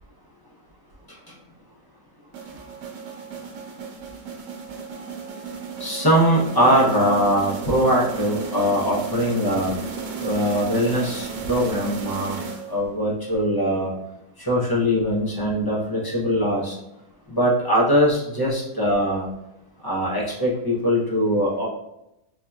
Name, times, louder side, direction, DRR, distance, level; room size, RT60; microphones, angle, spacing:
sound 1, 2.3-13.0, right 5 dB, 90° right, 1.1 m, -34 dB
voice 1, 5.8-9.7 10.2-12.4 12.7-13.9 14.5-16.7 17.3-19.3 19.8-21.7, equal, 30° left, -5 dB, 0.4 m, -21 dB
4.2 x 2.7 x 2.3 m, 0.87 s
omnidirectional pair, 1.5 m